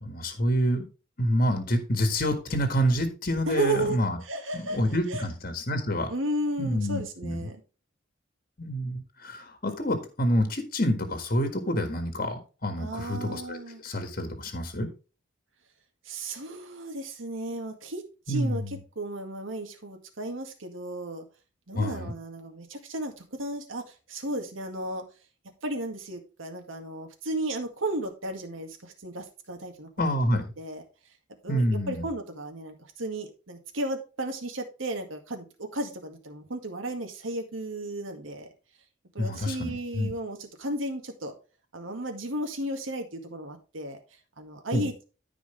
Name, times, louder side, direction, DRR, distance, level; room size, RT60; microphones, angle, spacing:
voice 1, 0.0-0.9 1.2-4.2 4.5-6.1 6.6-7.5 8.6-14.9 18.3-18.7 21.7-22.1 30.0-30.4 31.5-32.1 39.2-40.1 44.7-44.9, equal, 45° left, 6 dB, 1.8 m, -27 dB
voice 2, 3.5-4.8 5.1-5.2 6.1-7.6 12.8-13.8 16.1-21.3 21.7-23.8 24.1-25.0 25.6-30.2 30.6-30.8 31.4-38.5 39.1-41.3 41.7-44.0 44.4-45.0, right 1 dB, 90° right, 4 dB, 1.9 m, -34 dB
14.0 x 5.0 x 3.3 m, 0.33 s
head